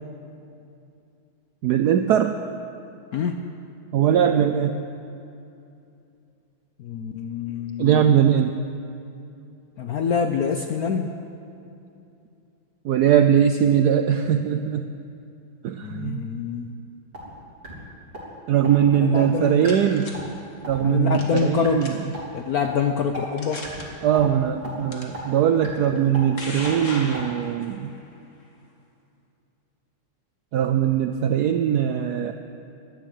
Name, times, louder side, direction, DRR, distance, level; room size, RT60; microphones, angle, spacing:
voice 1, 1.6-2.3 3.9-4.8 7.8-8.5 12.8-14.9 15.6-16.2 18.5-20.1 20.7-21.9 24.0-27.9 30.5-32.3, right 9 dB, 80° right, 7 dB, 0.9 m, -20 dB
voice 2, 6.8-8.1 9.8-11.1 15.8-16.8 18.7-19.7 20.8-21.8 22.3-23.7, left 6 dB, 70° left, 5 dB, 0.9 m, -26 dB
sound 1, 17.1-17.3 17.6-17.7 18.1-18.2 18.6-18.7 19.1-19.2 19.6-19.7 20.1-20.3 20.6-20.8 21.1-21.2 21.6-21.7 22.1-22.2 22.6-22.7 23.1-23.2 23.6-23.8 24.1-24.3 24.6-24.7 25.1-25.2 25.6-25.7 26.1-26.2 26.6-26.7 27.1-27.2, right 1 dB, 25° right, 3.3 m, -35 dB
sound 2, 19.2-20.1 21.1-21.5 21.8-22.2 22.8-22.9 23.4-23.8 24.9-25.0 26.0-27.7, left 2 dB, 35° left, 2.0 m, -36 dB
17.5 x 12.0 x 6.5 m, 2.6 s
omnidirectional pair, 2.3 m